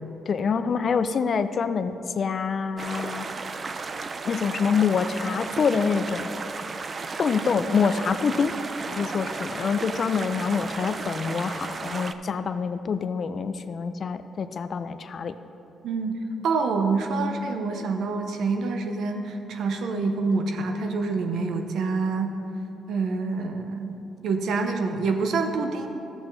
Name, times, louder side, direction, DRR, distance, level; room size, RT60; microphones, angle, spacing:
voice 1, 0.3-3.3 4.2-6.3 7.2-8.6 8.9-15.3, left 6 dB, 50° left, 11 dB, 0.4 m, -26 dB
sound 1, 2.8-12.1, right 4 dB, 40° right, 0.4 m, -34 dB
voice 2, 15.8-22.3 22.9-25.9, right 4 dB, 70° right, 5 dB, 0.8 m, -27 dB
13.0 x 8.0 x 3.2 m, 2.8 s
cardioid pair, 90°, 0 cm